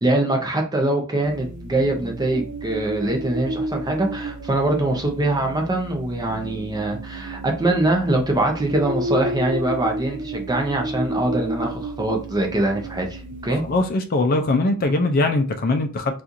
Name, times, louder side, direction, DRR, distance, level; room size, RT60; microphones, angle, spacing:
voice 1, 0.0-13.6, right 2 dB, 20° right, 0.6 m, -23 dB
sound 1, 1.2-13.8, right 1 dB, 60° right, 0.5 m, -31 dB
voice 2, 13.6-16.2, left 2 dB, 45° left, 0.4 m, -21 dB
4.2 x 2.4 x 2.5 m
head